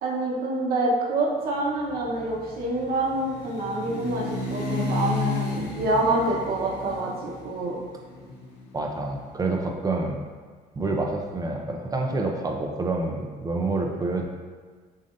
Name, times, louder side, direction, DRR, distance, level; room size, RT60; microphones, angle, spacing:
voice 1, 0.0-7.8, right 2 dB, 60° right, -4 dB, 1.1 m, -26 dB
sound 1, 1.7-9.7, left 3 dB, 75° left, 1.2 m, -33 dB
voice 2, 8.7-10.2 10.7-14.2, right 2 dB, 20° right, 2 dB, 0.6 m, -27 dB
7.2 x 2.7 x 2.6 m, 1.5 s
cardioid pair, 110°, 17 cm